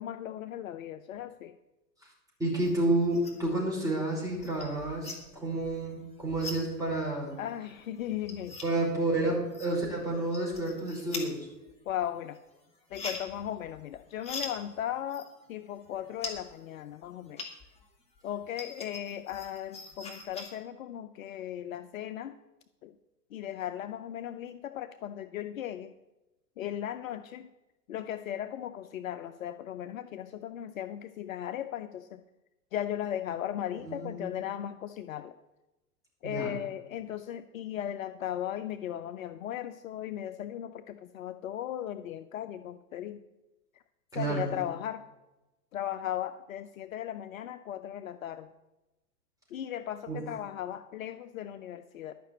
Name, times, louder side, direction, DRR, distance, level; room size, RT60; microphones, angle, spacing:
voice 1, 0.0-1.5 7.4-8.6 11.9-12.4 12.9-17.4 18.2-22.3 22.8-22.9 23.3-25.9 26.6-27.5 27.9-32.2 32.7-35.3 36.2-43.2 44.1-45.0 45.7-48.5 49.5-52.1, left 11 dB, 55° left, 10 dB, 0.6 m, -37 dB
voice 2, 2.4-5.1 5.4-7.4 8.6-11.5 33.9-34.3 36.2-36.6 44.1-44.5 50.1-50.2, right 2 dB, 5° right, -4 dB, 5.0 m, -30 dB
sound 1, 2.6-3.6 3.9-17.8 18.2-20.5, left 3 dB, 10° left, 2.2 m, -43 dB
11.5 x 5.9 x 8.5 m, 1.0 s
figure-of-eight pair, 100°, 49 cm